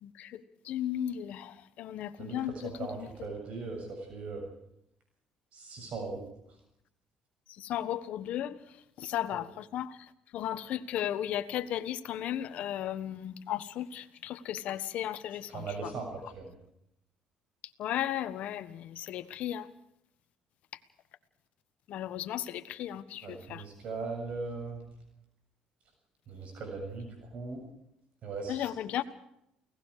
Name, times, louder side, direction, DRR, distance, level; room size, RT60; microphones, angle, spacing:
voice 1, 0.0-3.1 7.6-8.6 9.0-15.9 17.8-19.7 21.9-23.6 28.5-29.0, left 11 dB, 70° left, 9 dB, 1.4 m, -35 dB
voice 2, 2.6-4.5 5.5-6.2 15.5-16.1 16.3-16.5 23.2-24.8 26.3-27.6 28.2-28.7, right 4 dB, 60° right, 3 dB, 7.3 m, -39 dB
29.5 x 18.0 x 5.0 m, 0.78 s
cardioid pair, 95°, 2 cm